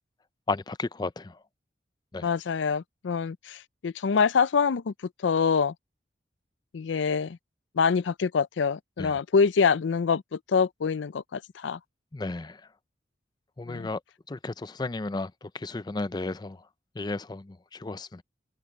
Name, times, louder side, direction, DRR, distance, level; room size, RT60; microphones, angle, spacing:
voice 1, 0.5-1.4 2.1-2.3 9.0-9.2 12.1-12.6 13.6-14.0 14.3-16.6 17.0-18.2, left 3 dB, 25° left, 0.4 m, -33 dB
voice 2, 2.2-4.9 5.2-5.7 6.7-7.4 7.8-11.8 13.7-13.9, left 5 dB, 85° left, 0.5 m, -25 dB
head